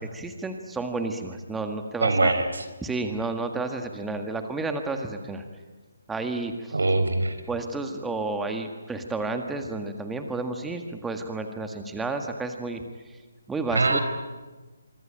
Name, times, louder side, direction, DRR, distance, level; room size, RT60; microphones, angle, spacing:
voice 1, 0.0-2.3 2.8-5.4 6.1-6.7 7.5-12.8 13.5-14.0, right 3 dB, 5° right, 5 dB, 1.7 m, -31 dB
voice 2, 2.0-2.7 6.7-7.4 13.7-14.0, right 2 dB, 80° right, 9 dB, 4.2 m, -22 dB
25.5 x 24.0 x 8.9 m, 1.2 s
figure-of-eight pair, 145°, 0 cm